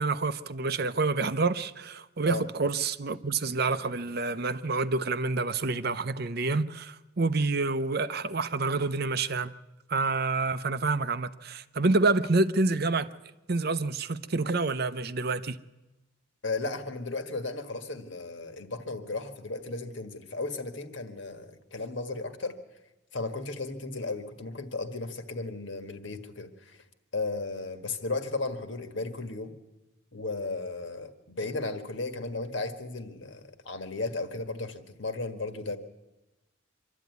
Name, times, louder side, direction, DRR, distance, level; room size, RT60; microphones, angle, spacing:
voice 1, 0.0-9.5 9.9-13.1 13.5-15.6, right 3 dB, 50° right, 0.7 m, -28 dB
voice 2, 16.4-22.6 23.1-26.8 27.1-29.5 30.1-35.8, left 3 dB, 60° left, 1.6 m, -35 dB
25.0 x 12.5 x 9.4 m
head